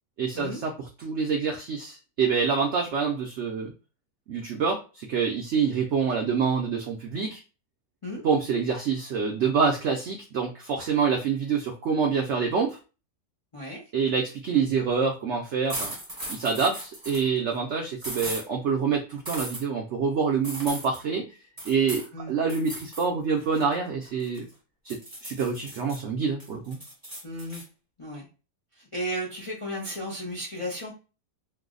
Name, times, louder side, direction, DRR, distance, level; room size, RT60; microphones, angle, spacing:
voice 1, 0.2-0.7 1.0-3.7 4.3-7.4 8.2-12.8 13.9-15.9 16.3-21.2 21.7-24.5 24.8-26.8, right 5 dB, 90° right, 2 dB, 0.6 m, -26 dB
sound 1, 15.7-17.3 18.0-18.4 19.3-19.6 20.4-21.0 21.6-22.1 22.5-23.1 23.4-24.5 24.9-26.0 26.4-27.6, right 1 dB, 15° right, 1.0 m, -37 dB
voice 2, 27.2-27.6 28.0-28.3 28.8-30.9, equal, 40° left, -3 dB, 0.4 m, -34 dB
3.2 x 2.0 x 3.7 m, 0.32 s
omnidirectional pair, 1.8 m